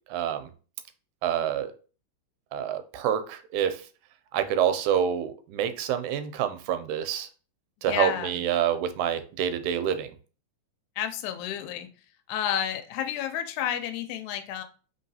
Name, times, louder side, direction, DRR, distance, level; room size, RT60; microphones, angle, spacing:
voice 1, 0.1-0.5 1.2-1.7 2.5-3.8 4.3-7.3 7.8-10.1, right 9 dB, 90° right, 9 dB, 2.0 m, -27 dB
voice 2, 7.9-8.4 11.0-11.9 12.3-14.6, left 10 dB, 85° left, 6 dB, 2.0 m, -31 dB
3.9 x 3.8 x 2.7 m, 0.37 s
omnidirectional pair, 3.4 m